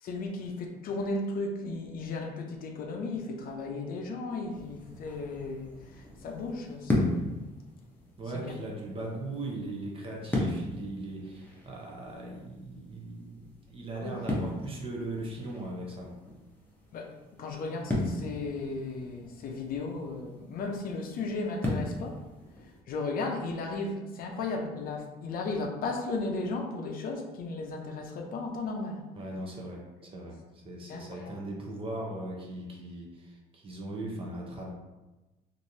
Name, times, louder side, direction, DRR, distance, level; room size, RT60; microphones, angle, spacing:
voice 1, 0.0-7.5 8.3-8.5 10.3-10.4 13.9-14.1 16.9-22.2 22.9-29.0 30.9-31.4, left 3 dB, 60° left, 2 dB, 0.5 m, -35 dB
sound 1, 4.5-22.8, left 1 dB, 10° left, 0.8 m, -37 dB
voice 2, 8.2-16.1 29.1-34.7, right 2 dB, 30° right, -1 dB, 0.7 m, -39 dB
3.1 x 2.6 x 2.7 m, 1.1 s
cardioid pair, 110°, 17 cm